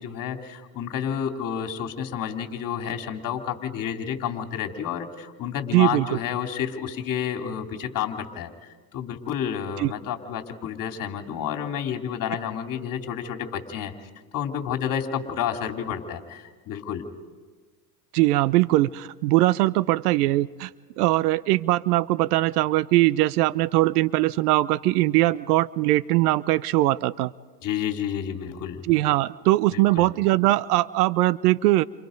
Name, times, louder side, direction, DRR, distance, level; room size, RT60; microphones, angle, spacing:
voice 1, 0.0-13.9 14.3-17.0 27.6-28.8 29.7-30.1, left 8 dB, 40° left, 4 dB, 3.2 m, -30 dB
voice 2, 5.7-6.2 9.8-9.9 18.1-20.7 21.0-27.3 28.8-31.8, right 17 dB, 65° right, 19 dB, 0.8 m, -21 dB
29.5 x 27.5 x 5.3 m, 1.3 s
hypercardioid pair, 90°, 50 cm